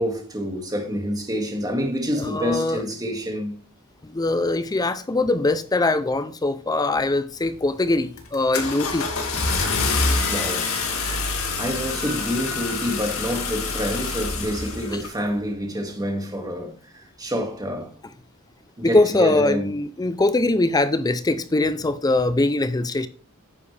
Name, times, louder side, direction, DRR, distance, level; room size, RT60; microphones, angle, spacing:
voice 1, 0.0-3.5 10.3-10.8 11.6-18.0 18.8-19.7, equal, 20° right, 2.0 m, -27 dB
voice 2, 2.2-2.8 4.1-9.1 18.8-23.1, left 2 dB, 20° left, 0.5 m, -22 dB
Car / Engine starting, 7.4-7.7 8.2-15.1, left 4 dB, 70° left, 2.2 m, -26 dB
9.8 x 7.9 x 3.3 m
head